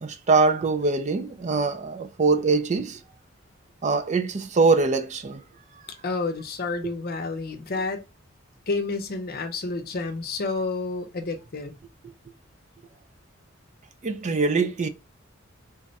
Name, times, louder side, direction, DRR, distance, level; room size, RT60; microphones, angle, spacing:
voice 1, 0.0-3.0 3.8-5.4 14.0-14.9, right 4 dB, 35° right, 0.4 m, -23 dB
voice 2, 6.0-8.0 8.7-11.7, left 3 dB, 50° left, 0.7 m, -29 dB
3.5 x 2.2 x 4.0 m
head